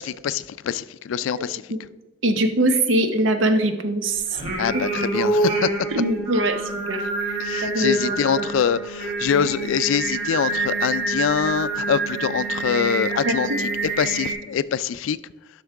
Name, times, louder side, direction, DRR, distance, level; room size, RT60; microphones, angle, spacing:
voice 1, 0.0-1.6 4.6-5.7 7.4-15.2, left 7 dB, 85° left, 0.3 m, -24 dB
voice 2, 2.2-4.2 5.1-5.3 5.9-6.6 6.9-8.4 13.2-13.6, right 1 dB, 80° right, 0.8 m, -22 dB
Singing, 4.3-14.3, right 3 dB, 35° right, 2.0 m, -27 dB
11.0 x 6.2 x 3.5 m
head